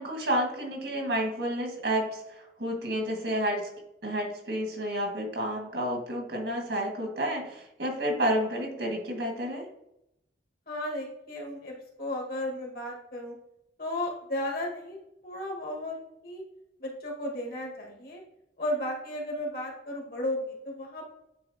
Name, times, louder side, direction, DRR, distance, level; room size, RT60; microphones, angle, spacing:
voice 1, 0.0-3.7 4.0-9.7, equal, 70° right, 1 dB, 1.8 m, -30 dB
voice 2, 10.7-13.4 13.8-15.0 15.2-16.0 16.2-16.4 16.8-18.2 18.6-21.1, left 1 dB, 55° left, -1 dB, 1.6 m, -34 dB
9.3 x 4.1 x 2.8 m, 0.80 s
head